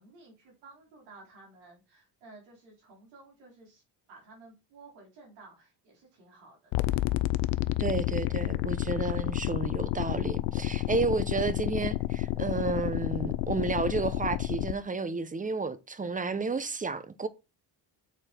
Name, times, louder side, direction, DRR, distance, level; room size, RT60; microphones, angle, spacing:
voice 1, 0.0-3.8 4.1-7.1, right 3 dB, 90° right, 4.3 m, -54 dB
sound 1, 6.7-14.7, left 17 dB, 90° left, 0.6 m, -30 dB
voice 2, 7.8-17.3, right 4 dB, 20° right, 0.8 m, -31 dB
7.0 x 4.3 x 4.4 m
cardioid pair, 80°, 44 cm